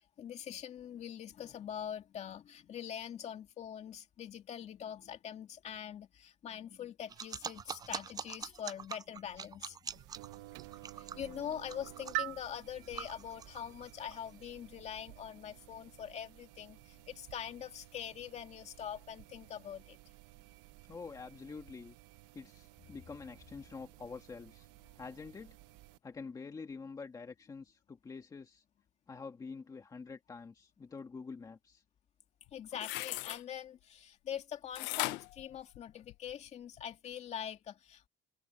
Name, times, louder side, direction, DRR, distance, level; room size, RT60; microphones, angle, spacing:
voice 1, 0.2-10.0 10.4-20.0 32.5-38.1, left 9 dB, 35° left, 2.4 m, -44 dB
sound 1, 7.1-14.5, right 7 dB, 20° right, 0.4 m, -45 dB
sound 2, 9.9-26.0, right 19 dB, 80° right, 1.1 m, -49 dB
voice 2, 20.9-22.0 22.3-24.7 25.0-25.6 26.0-28.6 29.1-31.8, left 4 dB, 20° left, 1.9 m, -47 dB
sound 3, 32.5-33.4 34.8-36.3 36.8-36.9, left 21 dB, 85° left, 0.7 m, -38 dB
cardioid pair, 150°, 18 cm